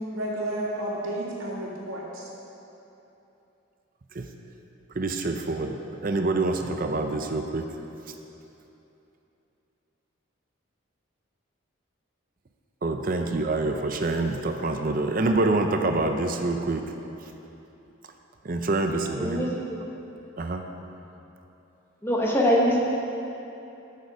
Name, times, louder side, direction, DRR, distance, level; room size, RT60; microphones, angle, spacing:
voice 1, 0.0-2.3, right 1 dB, 85° right, -5 dB, 2.3 m, -31 dB
voice 2, 4.9-7.7 12.8-16.9 18.4-19.5 19.8-19.9 20.4-20.7, right 2 dB, 40° right, 5 dB, 0.5 m, -26 dB
voice 3, 19.2-19.8 22.0-22.8, equal, 10° left, -3 dB, 1.0 m, -23 dB
13.0 x 6.8 x 4.7 m, 3.0 s
head